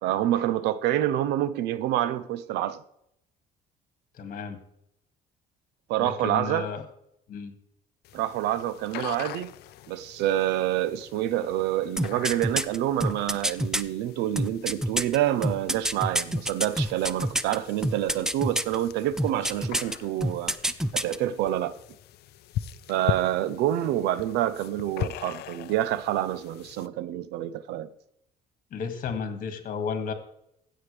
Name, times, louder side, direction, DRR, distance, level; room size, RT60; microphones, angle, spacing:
voice 1, 0.0-2.8 5.9-6.7 8.1-9.5 9.9-20.6 20.9-21.8 22.9-27.9, right 12 dB, 85° right, 0.7 m, -27 dB
voice 2, 4.1-4.6 6.0-6.8 7.3-7.5 28.7-30.1, left 5 dB, 55° left, 2.0 m, -33 dB
sound 1, 8.0-26.9, left 12 dB, 70° left, 0.6 m, -41 dB
sound 2, 12.0-13.8 14.4-17.6 17.8-18.8 19.2-20.0 20.2-21.2 21.5-21.6, equal, 5° right, 0.5 m, -26 dB
15.5 x 7.6 x 3.4 m
cardioid pair, 110°, 17 cm